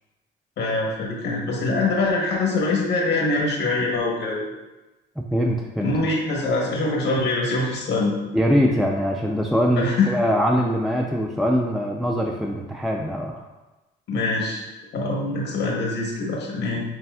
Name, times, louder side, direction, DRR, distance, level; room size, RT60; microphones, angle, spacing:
voice 1, 0.6-4.4 5.8-8.2 9.8-10.1 14.1-14.7 14.9-16.8, left 3 dB, 80° left, -2 dB, 1.0 m, -24 dB
voice 2, 5.2-5.9 8.3-13.4, equal, ahead, 1 dB, 0.3 m, -22 dB
6.8 x 3.3 x 2.2 m, 1.1 s
cardioid pair, 90°, 20 cm